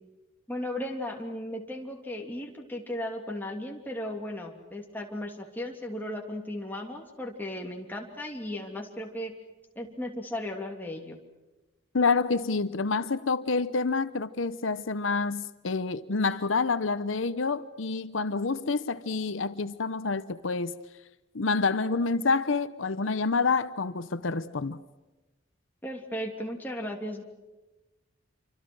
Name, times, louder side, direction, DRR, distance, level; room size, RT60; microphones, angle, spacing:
voice 1, 0.5-9.3 9.7-11.2 25.8-27.2, left 1 dB, 10° left, 3.0 m, -36 dB
voice 2, 11.9-20.7 21.3-24.8, left 4 dB, 85° left, 0.9 m, -28 dB
27.5 x 25.0 x 6.3 m
head